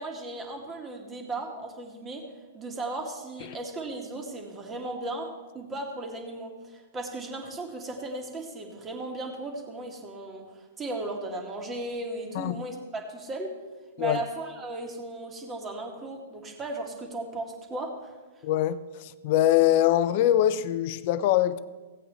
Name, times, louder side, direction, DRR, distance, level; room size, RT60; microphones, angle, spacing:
voice 1, 0.0-2.2 2.5-13.5 14.0-18.1, right 2 dB, 20° right, 2.0 m, -36 dB
voice 2, 18.4-21.6, left 12 dB, 50° left, 0.6 m, -23 dB
16.5 x 8.4 x 3.4 m
hypercardioid pair, 115°, 0 cm